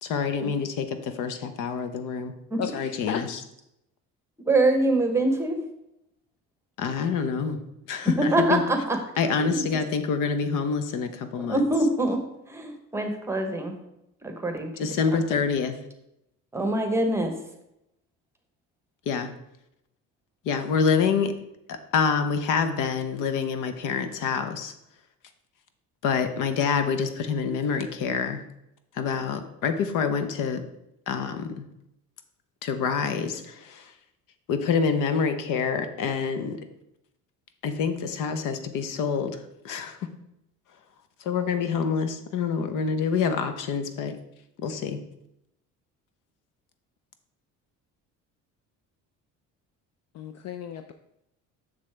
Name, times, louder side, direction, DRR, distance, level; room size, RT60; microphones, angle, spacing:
voice 1, 0.0-2.3 2.7-3.4 6.8-7.6 7.9-8.6 9.2-11.6 14.8-15.8 19.1-19.3 20.4-21.3 21.7-24.7 26.0-28.4 28.9-30.7 31.1-31.7 32.6-33.9 34.5-36.6 37.6-39.4 39.6-40.0 41.2-44.1 44.6-45.0, left 6 dB, 70° left, 9 dB, 0.9 m, -26 dB
voice 2, 2.6-3.2 50.1-50.9, left 9 dB, 50° left, 8 dB, 0.5 m, -34 dB
voice 3, 4.5-5.6 8.3-9.0 11.4-12.2 12.5-13.8 14.2-14.7 16.5-17.3, right 2 dB, 10° right, 5 dB, 0.9 m, -24 dB
6.9 x 6.6 x 3.3 m, 0.83 s
cardioid pair, 135°, 33 cm